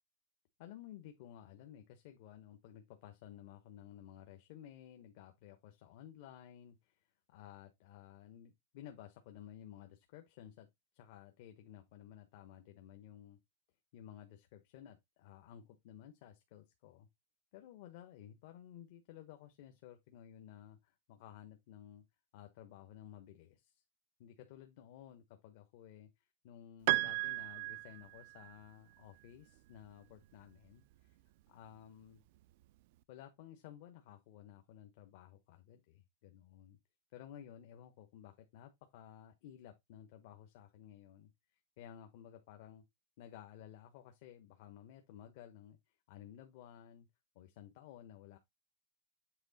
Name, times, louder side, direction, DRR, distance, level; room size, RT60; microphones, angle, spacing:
voice 1, 0.6-10.7 10.9-13.4 13.9-17.1 17.5-22.0 22.3-23.8 24.2-31.2 31.5-32.2 33.1-36.8 37.1-41.3 41.8-42.8 43.2-47.1 47.3-48.4, left 10 dB, 50° left, 1.0 m, -55 dB
Piano, 26.9-28.6, right 22 dB, 50° right, 0.3 m, -35 dB
8.0 x 3.6 x 4.1 m
supercardioid pair, 160°, 0 cm